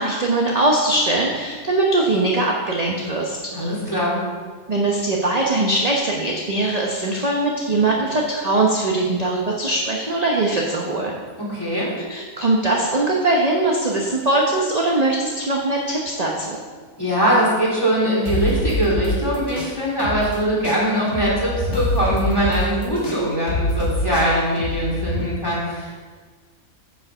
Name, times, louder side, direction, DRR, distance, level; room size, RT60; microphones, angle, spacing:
voice 1, 0.0-3.4 4.7-11.1 12.1-16.6, right 2 dB, 30° right, -2 dB, 1.0 m, -21 dB
voice 2, 3.5-4.2 11.4-11.9 17.0-26.0, equal, 15° left, -6 dB, 3.5 m, -22 dB
sound 1, 18.3-20.4 20.6-25.2, left 1 dB, 50° left, 2.0 m, -25 dB
9.6 x 6.9 x 6.8 m, 1.5 s
omnidirectional pair, 1.6 m